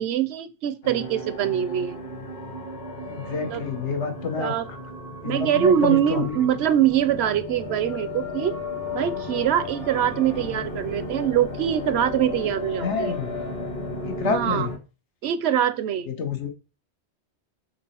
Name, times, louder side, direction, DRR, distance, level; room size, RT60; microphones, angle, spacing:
voice 1, 0.0-2.0 3.5-3.6 4.4-4.7 5.2-8.6 8.9-13.1 14.2-14.7 15.2-16.1, right 10 dB, 70° right, 0.8 m, -23 dB
sound 1, 0.8-14.8, left 2 dB, 60° left, 2.1 m, -34 dB
voice 2, 3.1-4.5 5.2-6.5 12.8-13.3 14.0-14.7 16.1-16.5, left 5 dB, 80° left, 1.4 m, -28 dB
6.1 x 3.9 x 4.4 m
omnidirectional pair, 1.2 m